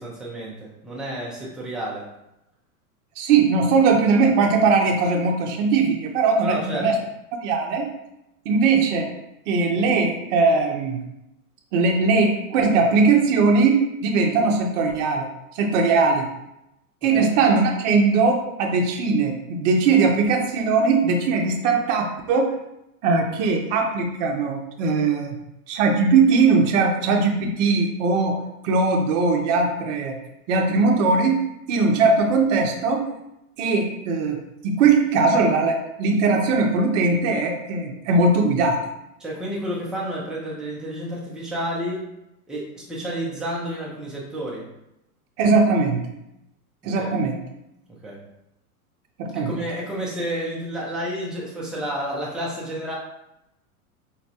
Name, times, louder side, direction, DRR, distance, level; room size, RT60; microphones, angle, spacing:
voice 1, 0.0-2.1 6.4-6.9 17.1-17.6 39.2-42.0 42.5-44.7 46.8-47.1 48.0-48.2 49.3-53.0, equal, ahead, -5 dB, 0.4 m, -30 dB
voice 2, 3.2-7.0 7.4-7.9 8.5-9.1 9.5-11.1 11.7-15.3 15.6-16.3 17.0-22.6 23.0-25.4 25.7-28.4 28.6-30.2 30.5-33.1 33.6-38.8 45.4-46.1 46.8-47.4 49.2-49.5, right 4 dB, 55° right, 1 dB, 0.6 m, -20 dB
4.0 x 2.1 x 2.7 m, 0.86 s
hypercardioid pair, 115°, 45 cm